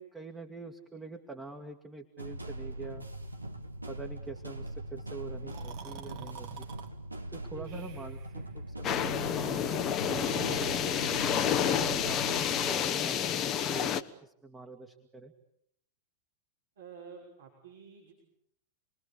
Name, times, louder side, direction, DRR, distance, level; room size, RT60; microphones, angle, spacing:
voice 1, 0.0-3.1 3.9-6.7 7.3-9.8 10.1-11.0 11.6-13.2 13.6-15.3, right 4 dB, 10° right, 3 dB, 2.1 m, -45 dB
sound 1, 2.2-12.8, right 1 dB, 85° right, 1.9 m, -41 dB
Breathing, 5.4-6.9 7.7-8.3 10.0-11.7, right 9 dB, 45° right, 2.6 m, -46 dB
sound 2, 8.8-14.0, left 9 dB, 30° left, 1.2 m, -29 dB
voice 2, 16.8-18.1, right 6 dB, 65° right, -2 dB, 6.1 m, -49 dB
29.5 x 22.0 x 8.5 m, 0.73 s
figure-of-eight pair, 90°, 0 cm